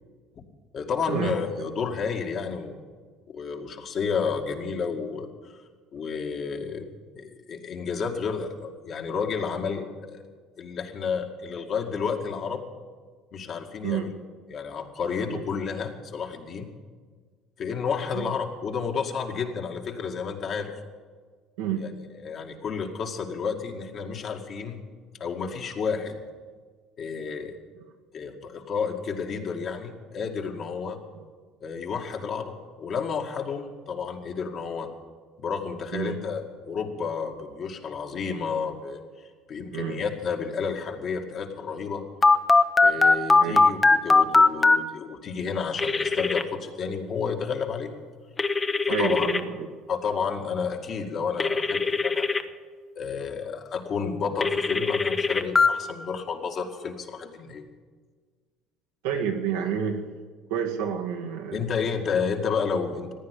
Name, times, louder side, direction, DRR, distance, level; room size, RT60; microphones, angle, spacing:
voice 1, 0.7-2.8 3.3-5.5 5.9-10.2 10.6-12.6 13.3-14.1 14.5-16.7 17.6-20.7 21.8-24.8 25.2-26.2 27.0-27.6 28.1-31.0 31.6-34.9 35.4-39.0 39.5-42.0 42.8-47.9 49.0-49.3 49.9-52.3 53.0-57.7 61.5-63.1, left 5 dB, 50° left, 3 dB, 2.1 m, -31 dB
voice 2, 21.6-21.9 35.9-36.1 39.7-40.0 43.4-43.6 48.9-49.5 59.0-60.1 60.5-61.6, right 8 dB, 85° right, 2 dB, 1.8 m, -29 dB
Telephone, 42.2-44.8 45.8-46.4 48.4-49.4 51.4-52.4 54.4-55.7, left 3 dB, 25° left, 0.8 m, -20 dB
15.0 x 9.9 x 8.5 m, 1.5 s
supercardioid pair, 90°, 0 cm